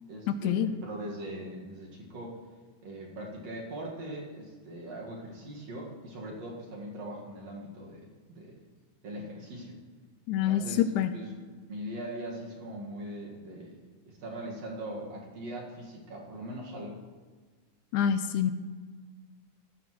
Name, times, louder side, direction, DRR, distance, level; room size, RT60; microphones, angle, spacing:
voice 1, 0.1-2.4 2.8-8.6 9.0-9.8 10.4-13.8 14.1-17.0, right 1 dB, 60° right, -3 dB, 2.9 m, -41 dB
voice 2, 10.3-10.6 11.0-11.1 17.9-18.5, left 9 dB, 80° left, 10 dB, 1.9 m, -26 dB
15.0 x 12.0 x 3.1 m, 1.4 s
omnidirectional pair, 3.6 m